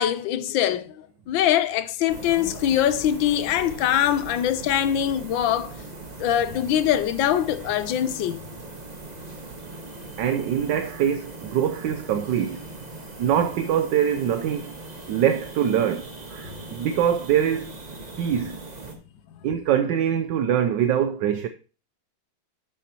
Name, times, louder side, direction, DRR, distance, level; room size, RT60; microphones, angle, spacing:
voice 1, 0.0-5.8 6.2-8.4, left 10 dB, 75° left, 1.4 m, -23 dB
sound 1, 2.1-19.0, right 2 dB, 25° right, 1.1 m, -40 dB
voice 2, 10.2-12.6 13.2-14.7 15.1-17.7 18.2-18.6 19.4-21.5, right 9 dB, 70° right, 1.2 m, -23 dB
12.0 x 7.1 x 3.0 m
omnidirectional pair, 2.2 m